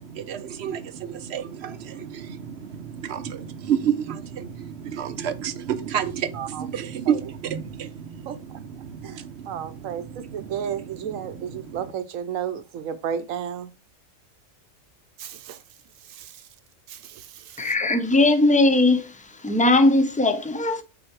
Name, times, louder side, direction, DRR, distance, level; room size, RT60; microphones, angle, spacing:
voice 1, 0.0-11.9, right 8 dB, 60° right, 0.8 m, -31 dB
voice 2, 6.3-6.7 7.1-7.2 8.3-8.4 9.0-13.7 15.2-15.6 16.1-16.4 16.9-17.7, right 8 dB, 85° right, 1.1 m, -33 dB
voice 3, 17.6-19.2 19.4-20.8, left 2 dB, 10° left, 0.4 m, -19 dB
6.3 x 4.1 x 4.6 m
omnidirectional pair, 1.3 m